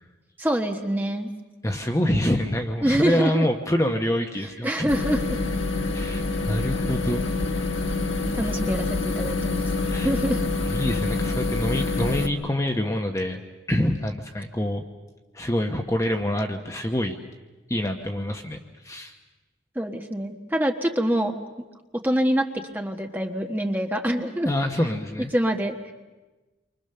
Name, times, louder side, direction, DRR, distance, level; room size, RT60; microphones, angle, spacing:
voice 1, 0.4-1.3 2.8-3.5 4.6-5.4 6.5-6.7 8.3-9.6 10.0-10.4 19.7-21.3 22.0-24.5 25.3-25.9, equal, 10° right, 3 dB, 1.3 m, -25 dB
voice 2, 1.6-4.9 5.9-7.2 9.9-10.1 10.6-13.4 13.7-14.8 15.3-17.2 17.7-19.1 24.4-25.3, left 1 dB, 15° left, 4 dB, 1.0 m, -26 dB
sound 1, 4.9-12.3, left 3 dB, 90° left, 1.6 m, -26 dB
28.5 x 24.5 x 6.8 m, 1.2 s
head